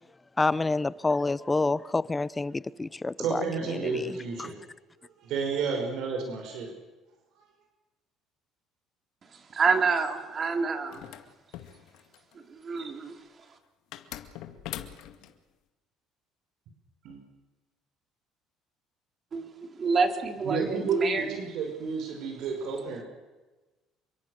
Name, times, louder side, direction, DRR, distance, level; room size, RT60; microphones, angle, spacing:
voice 1, 0.4-4.5, left 3 dB, 15° left, 0.7 m, -28 dB
voice 2, 3.2-4.6 5.2-6.7 17.0-17.2 20.4-23.0, right 5 dB, 70° right, 5.6 m, -31 dB
voice 3, 9.5-11.0 12.6-13.1 19.3-19.5 19.8-21.4, right 4 dB, 35° right, 3.9 m, -27 dB
sound 1, 10.9-12.3 13.9-15.3, left 12 dB, 75° left, 2.1 m, -42 dB
28.0 x 24.0 x 6.7 m
cardioid pair, 105°, 0 cm